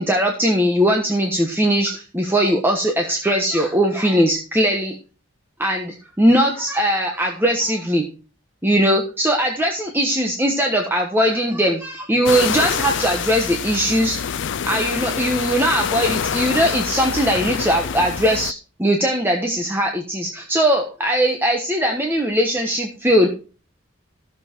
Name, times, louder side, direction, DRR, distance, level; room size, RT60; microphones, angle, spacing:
voice 1, 0.0-4.9 5.6-8.1 8.6-14.2 14.6-18.5 18.8-23.3, equal, 10° right, 2 dB, 1.2 m, -20 dB
sound 1, 12.3-18.5, left 7 dB, 55° left, 0.5 m, -26 dB
13.5 x 7.2 x 4.5 m, 0.35 s
head